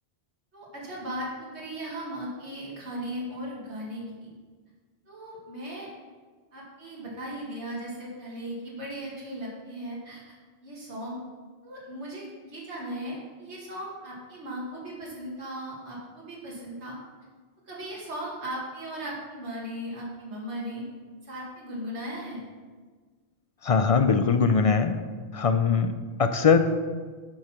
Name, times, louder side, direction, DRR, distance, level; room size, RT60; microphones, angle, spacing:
voice 1, 0.5-4.3 5.1-5.9 6.5-10.2 10.6-11.2 11.6-17.0 17.7-20.8 21.2-22.4, right 1 dB, 75° right, -5 dB, 2.3 m, -37 dB
voice 2, 23.6-25.0 25.3-26.6, left 5 dB, 50° left, 8 dB, 0.4 m, -21 dB
9.9 x 4.8 x 5.9 m, 1.4 s
omnidirectional pair, 1.1 m